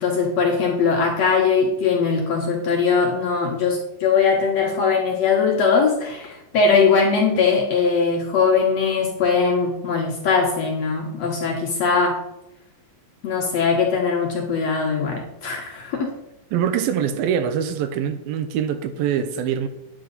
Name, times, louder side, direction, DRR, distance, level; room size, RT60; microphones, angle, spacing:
voice 1, 0.0-12.2 13.2-16.1, left 5 dB, 65° left, 1.8 m, -20 dB
voice 2, 16.5-19.7, right 8 dB, 80° right, 2.4 m, -24 dB
10.0 x 8.2 x 4.0 m
omnidirectional pair, 4.4 m